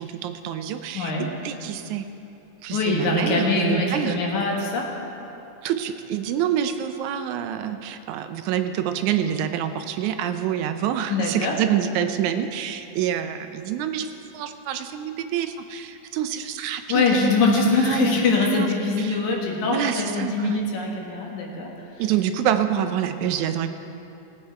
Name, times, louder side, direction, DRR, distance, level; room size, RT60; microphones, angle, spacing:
voice 1, 0.0-2.1 2.6-4.2 5.6-17.3 17.6-18.7 19.0-19.2 19.7-20.6 22.0-23.7, right 9 dB, 85° right, 8 dB, 2.0 m, -27 dB
voice 2, 0.9-1.3 2.7-4.9 11.1-11.5 16.9-21.7, left 3 dB, 80° left, -1 dB, 3.0 m, -23 dB
19.0 x 8.7 x 4.5 m, 2.9 s
omnidirectional pair, 3.3 m